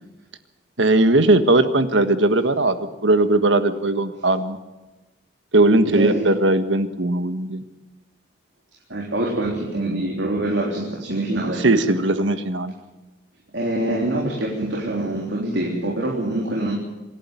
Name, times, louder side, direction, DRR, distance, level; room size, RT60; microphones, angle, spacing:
voice 1, 0.8-4.6 5.5-7.6 11.6-12.7, right 2 dB, 90° right, 9 dB, 1.6 m, -18 dB
voice 2, 5.9-6.3 8.9-11.6 13.5-16.7, right 1 dB, 70° right, -2 dB, 3.8 m, -25 dB
26.5 x 11.5 x 9.2 m, 1.1 s
head